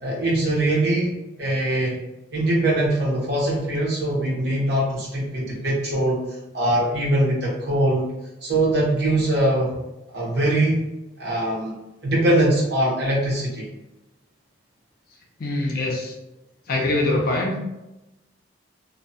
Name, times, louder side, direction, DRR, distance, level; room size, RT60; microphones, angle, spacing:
voice 1, 0.0-2.0 2.3-6.3 6.5-8.1 8.4-9.7 10.1-10.9 11.2-11.7 12.0-13.7, right 1 dB, 55° right, -5 dB, 0.9 m, -22 dB
voice 2, 15.4-16.1 16.7-17.6, left 2 dB, 50° left, 0 dB, 0.5 m, -23 dB
2.7 x 2.1 x 2.6 m, 0.96 s
head